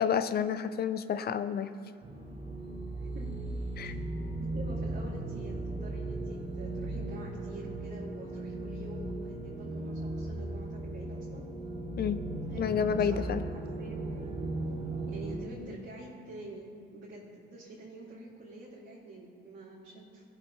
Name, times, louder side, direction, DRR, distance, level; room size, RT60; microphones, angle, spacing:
voice 1, 0.0-1.7 3.8-3.9 12.0-12.2 12.6-13.4, left 7 dB, 55° left, 12 dB, 0.5 m, -29 dB
sound 1, 2.0-15.4, right 2 dB, 30° right, 1.4 m, -37 dB
voice 2, 4.3-11.4 12.5-13.5 13.8-14.5 15.1-20.2, right 2 dB, 70° right, -9 dB, 2.5 m, -47 dB
16.5 x 6.7 x 3.2 m, 2.3 s
cardioid pair, 90°, 20 cm